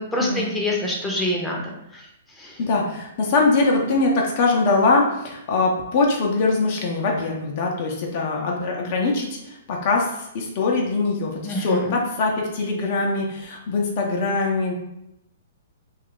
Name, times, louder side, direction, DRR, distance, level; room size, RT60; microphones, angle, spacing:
voice 1, 0.0-1.6 1.9-2.1 2.4-2.6 11.4-12.0, left 1 dB, 5° left, -2 dB, 0.7 m, -26 dB
voice 2, 2.6-14.7, left 3 dB, 45° left, -1 dB, 0.6 m, -22 dB
2.8 x 2.4 x 3.6 m, 0.82 s
figure-of-eight pair, 115°, 0 cm